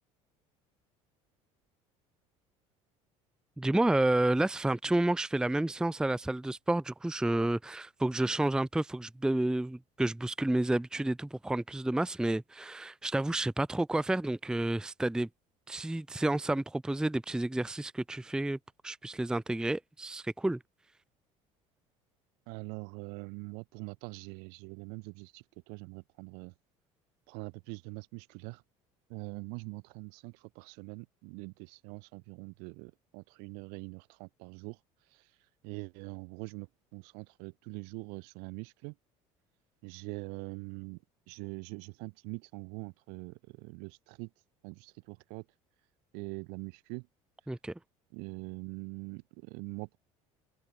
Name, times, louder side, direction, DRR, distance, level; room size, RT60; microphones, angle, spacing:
voice 1, 3.6-15.3 15.7-18.6 18.8-20.6 47.5-47.7, right 1 dB, 5° right, 0.6 m, -30 dB
voice 2, 22.5-26.5 27.3-28.6 29.1-34.8 35.1-35.3 35.6-39.0 39.8-44.3 44.6-45.5 46.1-47.1 48.1-50.0, right 39 dB, 70° right, 2.1 m, -43 dB
open air
hypercardioid pair, 75°, 17 cm